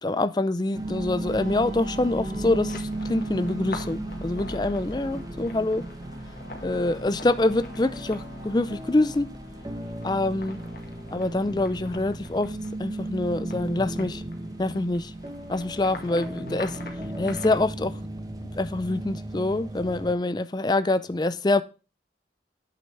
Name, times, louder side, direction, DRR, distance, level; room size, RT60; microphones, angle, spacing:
voice 1, 0.0-5.8 6.6-9.3 10.0-10.6 11.1-14.2 14.6-15.1 15.5-16.8 17.2-18.0 18.6-21.6, left 2 dB, 25° left, 0.4 m, -25 dB
sound 1, 0.7-20.1, right 1 dB, 20° right, 1.0 m, -35 dB
sound 2, 1.3-17.6, left 2 dB, 50° left, 2.1 m, -45 dB
8.5 x 7.5 x 3.2 m
head